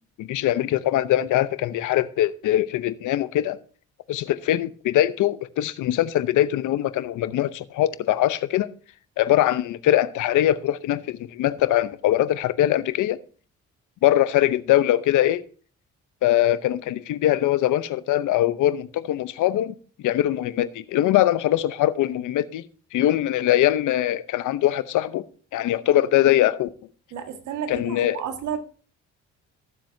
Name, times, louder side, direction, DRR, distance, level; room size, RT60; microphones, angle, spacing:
voice 1, 0.2-3.6 4.1-8.7 9.2-13.2 14.0-15.4 16.2-19.7 20.0-22.7 22.9-25.2 25.5-26.7 27.7-28.2, left 13 dB, 85° left, 0.8 m, -22 dB
voice 2, 27.1-28.6, right 8 dB, 80° right, 1.8 m, -31 dB
18.0 x 7.6 x 2.7 m
cardioid pair, 90°, 30 cm